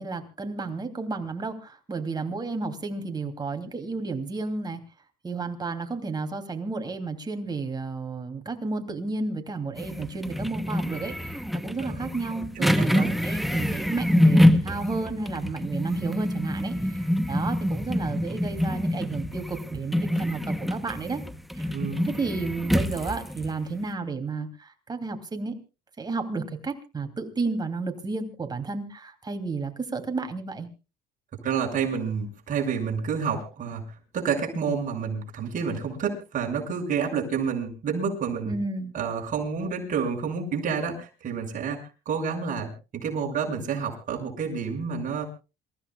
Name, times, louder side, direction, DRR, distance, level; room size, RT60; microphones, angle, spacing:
voice 1, 0.0-4.8 5.2-21.2 21.5-21.7 22.0-25.5 26.0-30.7 38.4-38.9, right 3 dB, 25° right, 6 dB, 2.9 m, -32 dB
sound 1, 9.8-23.5, left 1 dB, ahead, 0.9 m, -26 dB
voice 2, 12.6-13.1 21.7-22.1 31.4-33.8 34.1-38.5 38.9-42.7 43.0-45.3, right 6 dB, 50° right, 1 dB, 6.3 m, -29 dB
27.5 x 15.0 x 2.4 m, 0.31 s
cardioid pair, 110°, 17 cm